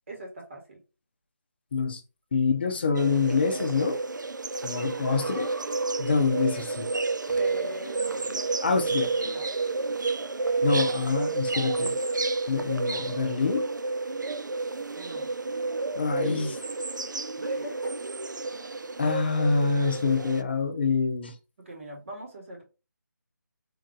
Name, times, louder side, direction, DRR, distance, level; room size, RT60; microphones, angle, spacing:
voice 1, 0.1-0.8 4.9-5.7 7.4-8.4 9.2-9.5 14.9-15.3 17.3-17.9 21.6-22.6, equal, 40° right, 1.3 m, -40 dB
voice 2, 2.3-4.0 4.6-5.5 6.0-6.9 8.6-9.3 10.6-12.0 12.5-13.7 16.0-16.6 19.0-21.3, left 4 dB, 30° left, 0.7 m, -26 dB
sound 1, 2.9-20.4, right 3 dB, 75° right, 0.4 m, -30 dB
3.9 x 2.6 x 3.6 m
figure-of-eight pair, 155°, 10 cm